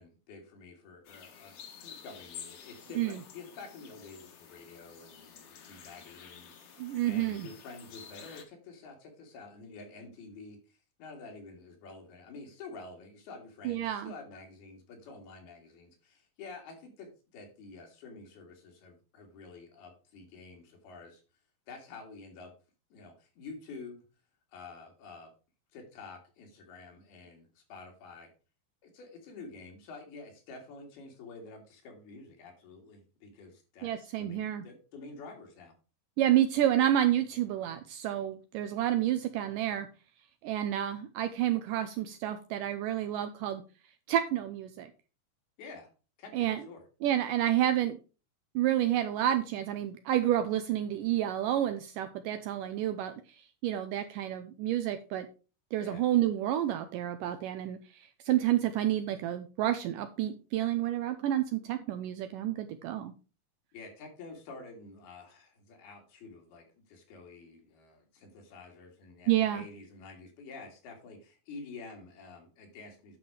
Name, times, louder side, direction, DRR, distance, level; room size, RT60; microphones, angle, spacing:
voice 1, 0.0-21.2 21.7-22.5 22.9-24.0 24.5-25.3 25.7-28.3 28.8-35.7 45.6-45.9 46.2-46.8 55.8-56.0 63.7-73.2, left 3 dB, 90° left, 2 dB, 4.1 m, -49 dB
sound 1, 1.0-8.4, left 7 dB, 55° left, 1.8 m, -50 dB
voice 2, 6.8-7.5 13.7-14.1 33.8-34.6 36.2-39.9 40.4-43.6 44.1-44.9 46.3-46.6 47.0-48.0 48.6-53.1 53.6-55.3 55.7-57.8 58.3-63.1 69.3-69.6, right 12 dB, 80° right, 9 dB, 2.0 m, -29 dB
9.5 x 6.2 x 4.8 m, 0.34 s
omnidirectional pair, 4.3 m